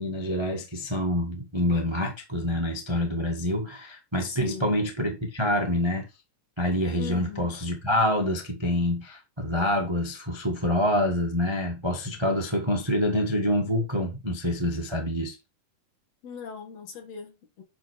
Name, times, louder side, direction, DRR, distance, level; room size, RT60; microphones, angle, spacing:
voice 1, 0.0-6.0 6.6-15.3, left 1 dB, 15° right, 1.0 m, -26 dB
voice 2, 4.2-4.7 7.0-7.5 16.2-17.6, left 6 dB, 55° left, 2.9 m, -39 dB
10.0 x 4.5 x 4.6 m
omnidirectional pair, 3.6 m